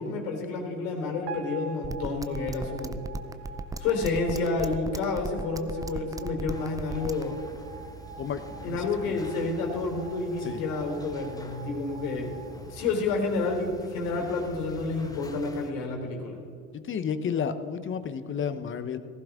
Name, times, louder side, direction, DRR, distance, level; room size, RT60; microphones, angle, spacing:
voice 1, 0.0-3.0 3.8-7.4 8.6-12.4 12.7-16.3, left 3 dB, 70° left, 1 dB, 3.7 m, -29 dB
sound 1, 1.3-13.5, right 6 dB, 70° right, 1.5 m, -45 dB
sound 2, 1.8-7.2, right 2 dB, 10° right, 0.5 m, -35 dB
sound 3, 6.5-15.7, equal, 10° left, 1.2 m, -46 dB
voice 2, 8.2-9.2 10.4-10.6 16.7-19.0, left 7 dB, 30° left, 11 dB, 0.8 m, -32 dB
16.0 x 14.5 x 3.6 m, 2.6 s
hypercardioid pair, 85°, 42 cm